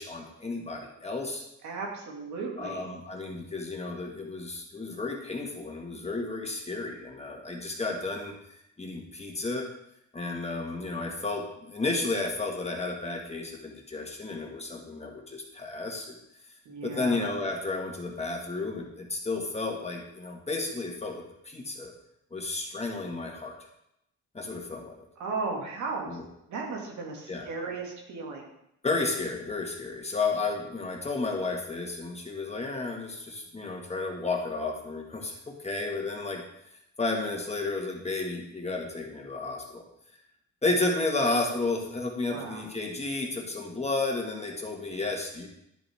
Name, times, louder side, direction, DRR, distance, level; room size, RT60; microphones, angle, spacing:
voice 1, 0.0-1.4 2.6-8.3 8.8-9.6 10.1-16.1 16.8-21.9 22.3-23.5 24.3-25.0 26.1-26.3 27.3-27.5 28.8-36.4 37.0-39.8 40.6-45.5, left 3 dB, 20° left, 0 dB, 1.8 m, -32 dB
voice 2, 1.6-2.9 16.7-17.3 25.2-26.2 26.5-28.5 42.3-42.6, right 3 dB, 70° right, -1 dB, 2.4 m, -35 dB
10.0 x 7.1 x 3.6 m, 0.81 s
cardioid pair, 90°, 30 cm